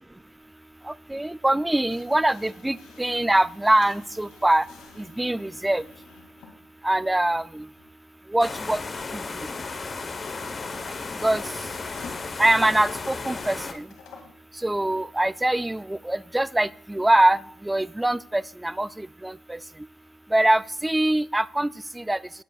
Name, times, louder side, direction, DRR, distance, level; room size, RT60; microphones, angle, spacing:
voice 1, 0.9-4.7 5.0-5.8 6.8-7.7 8.3-8.8 9.1-9.2 11.2-11.4 12.4-13.9 14.6-19.6 20.3-22.2, right 1 dB, 10° right, 18 dB, 0.3 m, -23 dB
sound 1, 1.9-6.6 7.7-7.9 11.7-14.4, left 5 dB, 90° left, 2.2 m, -50 dB
sound 2, 8.4-13.7, left 4 dB, 35° left, 1.0 m, -34 dB
17.5 x 8.2 x 2.4 m, 0.63 s
cardioid pair, 90°, 0 cm